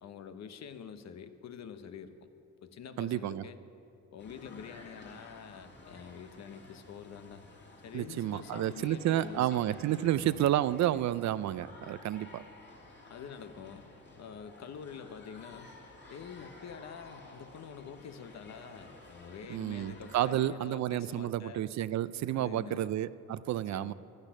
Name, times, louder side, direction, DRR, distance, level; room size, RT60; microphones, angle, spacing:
voice 1, 0.0-2.3 2.6-3.6 4.1-7.4 7.8-10.5 13.1-13.9 14.2-15.7 16.1-21.6 22.3-22.9 23.7-23.9, left 7 dB, 60° left, 10 dB, 1.0 m, -46 dB
voice 2, 3.0-3.4 7.9-12.5 19.5-23.9, right 12 dB, 65° right, 17 dB, 0.5 m, -31 dB
sound 1, 4.2-20.5, left 2 dB, 35° left, 2.8 m, -53 dB
12.0 x 10.5 x 9.9 m, 2.6 s
cardioid pair, 90°, 30 cm